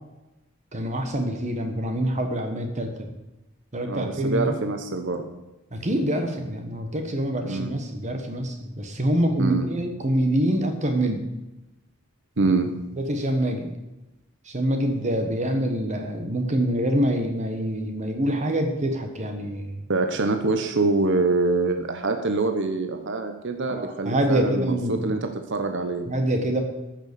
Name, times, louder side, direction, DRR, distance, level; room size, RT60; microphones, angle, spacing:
voice 1, 0.7-3.1 3.7-4.6 5.7-11.2 12.4-12.5 13.0-13.7 14.4-19.9 23.7-25.0 26.1-26.6, right 1 dB, 35° right, 5 dB, 1.3 m, -25 dB
voice 2, 3.9-5.3 7.4-7.7 9.4-9.7 12.4-12.7 19.9-26.1, right 3 dB, 55° right, 6 dB, 1.0 m, -25 dB
14.0 x 6.7 x 6.9 m, 1.0 s
head